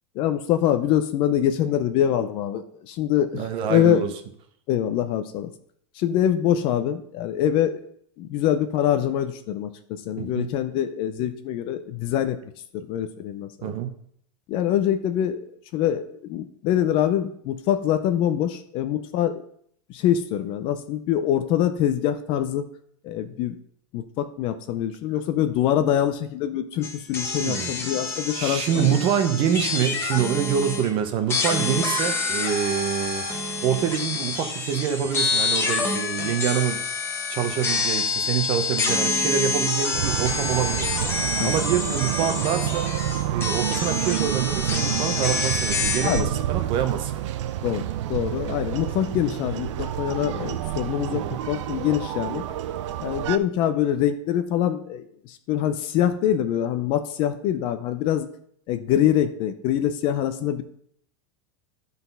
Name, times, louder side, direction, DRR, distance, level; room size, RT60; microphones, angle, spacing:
voice 1, 0.2-4.0 4.7-5.5 6.0-7.8 8.2-12.4 12.7-13.7 14.5-15.4 15.7-19.4 19.9-22.7 23.0-23.5 23.9-29.0 41.4-41.5 46.0-46.4 47.6-52.4 53.0-58.3 58.7-60.6, left 10 dB, 35° left, 9 dB, 0.5 m, -24 dB
voice 2, 3.3-4.1 10.2-10.5 13.6-13.9 27.4-27.8 28.3-33.2 33.6-36.8 37.3-40.9 41.4-42.9 43.3-47.1 51.1-51.4, right 9 dB, 35° right, 8 dB, 0.8 m, -26 dB
sound 1, 26.8-30.9 31.3-46.2, left 4 dB, 15° left, 1.0 m, -27 dB
sound 2, 39.9-53.4, right 11 dB, 70° right, 0.6 m, -28 dB
11.0 x 4.1 x 5.4 m, 0.68 s
supercardioid pair, 165°, 16 cm